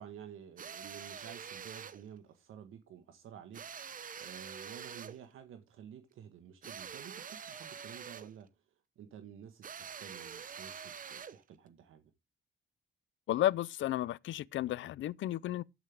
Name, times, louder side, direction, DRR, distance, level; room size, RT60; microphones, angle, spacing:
voice 1, 0.0-3.6 3.9-8.6 8.9-12.0, right 9 dB, 75° right, 1.5 m, -51 dB
sound 1, 0.6-2.0 3.5-5.2 6.6-8.4 9.6-11.4, right 7 dB, 40° right, 0.8 m, -46 dB
voice 2, 13.3-15.6, left 13 dB, 65° left, 0.5 m, -33 dB
13.0 x 9.1 x 3.5 m
cardioid pair, 110°, 21 cm